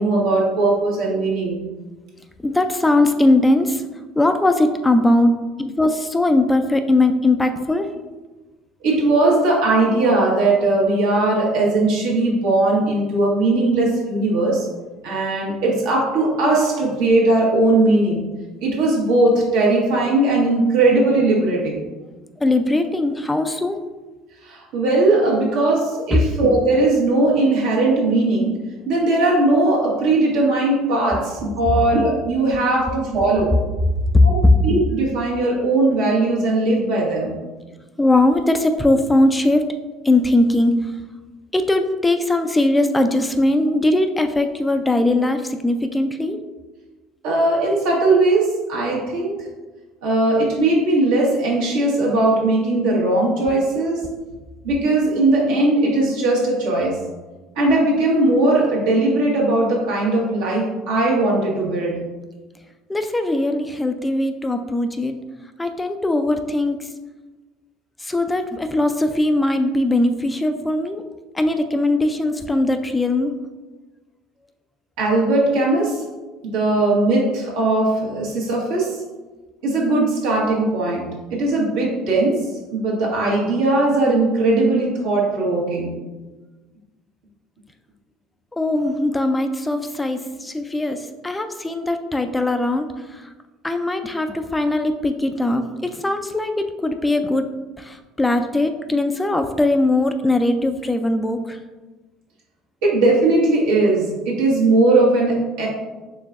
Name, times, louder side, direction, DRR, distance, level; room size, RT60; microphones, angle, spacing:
voice 1, 0.0-1.6 8.8-14.7 15.0-18.2 18.6-21.8 24.4-33.5 34.2-37.4 47.2-49.5 50.0-54.0 54.6-57.0 57.5-62.0 75.0-76.0 76.4-79.0 79.6-85.9 102.8-105.7, right 2 dB, 75° right, -4 dB, 1.2 m, -19 dB
voice 2, 2.4-3.8 4.2-7.9 22.4-23.8 34.1-34.3 38.0-39.6 40.0-40.9 41.5-46.4 62.9-65.2 65.6-66.8 68.0-71.0 71.3-73.3 88.5-92.9 93.1-93.3 93.6-97.5 97.8-101.6, left 2 dB, 15° left, 7 dB, 0.3 m, -20 dB
4.6 x 3.3 x 2.4 m, 1.2 s
hypercardioid pair, 70°, 0 cm